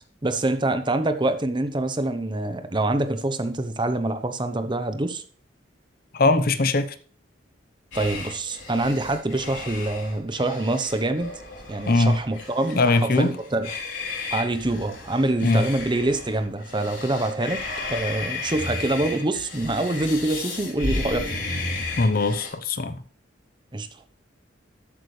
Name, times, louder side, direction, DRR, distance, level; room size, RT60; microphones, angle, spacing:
voice 1, 0.2-5.2 7.9-11.3 11.7-13.7 14.3-21.4 23.7-23.9, right 2 dB, 25° right, 0.9 m, -25 dB
voice 2, 6.1-6.9 11.8-12.2 12.7-13.3 15.4-15.6 22.0-23.0, left 2 dB, 50° left, 0.9 m, -20 dB
sound 1, 7.9-22.5, left 3 dB, 80° left, 3.6 m, -34 dB
13.5 x 8.4 x 3.3 m
head